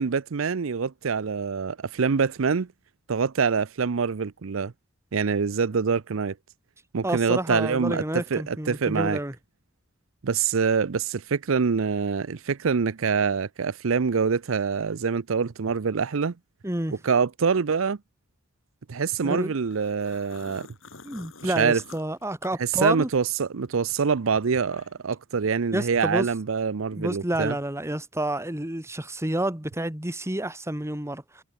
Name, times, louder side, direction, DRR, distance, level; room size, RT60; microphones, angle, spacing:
voice 1, 0.0-2.7 3.1-4.7 5.1-6.3 6.9-9.2 10.2-16.3 17.0-18.0 18.9-20.7 21.4-21.8 22.6-27.6, right 5 dB, 75° right, 0.6 m, -25 dB
voice 2, 7.0-9.3 16.6-16.9 19.2-19.5 21.0-23.1 25.7-26.3 26.9-31.2, right 1 dB, 15° right, 1.9 m, -29 dB
sound 1, 19.7-23.3 23.6-25.1, left 3 dB, 70° left, 7.1 m, -48 dB
head